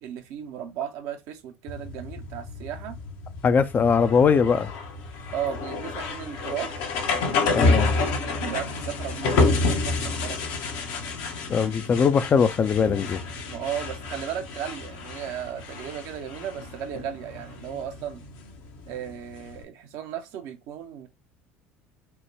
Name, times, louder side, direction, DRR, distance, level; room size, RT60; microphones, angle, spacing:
voice 1, 0.0-3.0 5.3-6.7 7.5-10.4 13.5-18.2 18.9-21.1, right 9 dB, 60° right, 0.7 m, -35 dB
sound 1, 1.7-19.6, left 3 dB, 60° left, 0.8 m, -29 dB
voice 2, 3.4-4.7 7.5-7.9 11.5-13.2, left 6 dB, 30° left, 0.4 m, -21 dB
4.4 x 2.2 x 3.2 m
hypercardioid pair, 65°, 6 cm